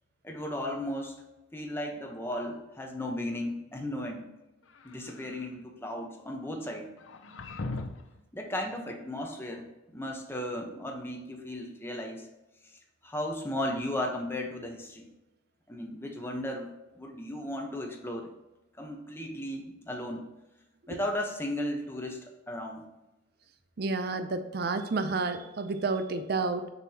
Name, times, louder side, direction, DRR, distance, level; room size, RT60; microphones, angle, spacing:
voice 1, 0.2-1.2 1.5-4.3 4.8-6.9 8.3-9.7 9.9-12.3 12.7-15.1 15.7-18.3 18.8-20.2 20.9-22.9, left 1 dB, 10° left, 1 dB, 0.9 m, -35 dB
sound 1, 4.6-5.5 7.0-8.2, left 3 dB, 85° left, 0.6 m, -40 dB
voice 2, 23.8-26.7, right 3 dB, 55° right, 9 dB, 0.5 m, -30 dB
6.7 x 6.7 x 2.9 m, 1.0 s
head